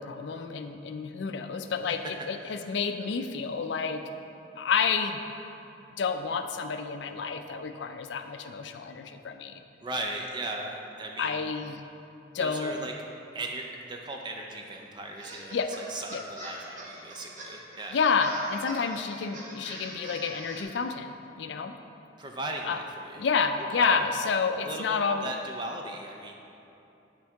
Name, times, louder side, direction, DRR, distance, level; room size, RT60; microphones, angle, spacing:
voice 1, 0.0-4.0 4.6-5.2 6.0-9.6 11.2-11.8 12.3-12.9 15.5-15.7 16.1-16.2 17.9-21.7 22.7-22.8 23.2-25.3, left 5 dB, 60° left, 7 dB, 0.4 m, -29 dB
voice 2, 9.8-11.4 12.4-12.9 13.3-18.0 22.2-23.3 23.8-24.1 24.6-26.3, right 2 dB, 25° right, 1 dB, 0.4 m, -37 dB
sound 1, 15.2-20.6, right 1 dB, 40° right, 0.9 m, -42 dB
8.9 x 4.5 x 3.5 m, 2.8 s
head